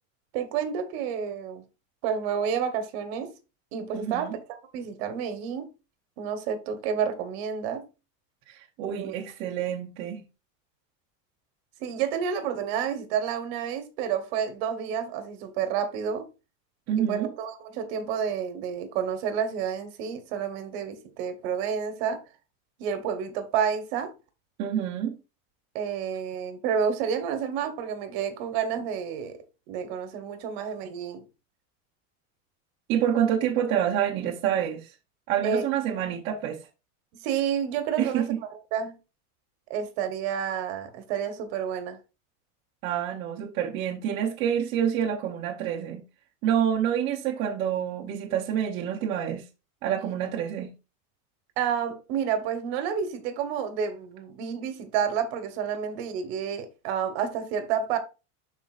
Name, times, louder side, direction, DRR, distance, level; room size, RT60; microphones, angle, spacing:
voice 1, 0.3-1.6 2.0-3.3 3.7-4.4 4.7-5.7 6.2-7.9 8.8-9.1 11.8-16.3 17.0-22.2 22.8-24.1 25.7-29.4 29.7-31.2 35.4-35.6 37.1-38.3 38.7-39.0 39.7-42.0 51.6-58.0, right 7 dB, 50° right, 1.3 m, -30 dB
voice 2, 3.9-4.4 8.5-10.2 16.9-17.3 24.6-25.2 32.9-34.9 35.3-36.7 38.0-38.4 42.8-46.1 46.4-49.5 49.8-50.7, right 9 dB, 30° right, 0.8 m, -27 dB
12.0 x 4.1 x 2.5 m
supercardioid pair, 180°, 40 cm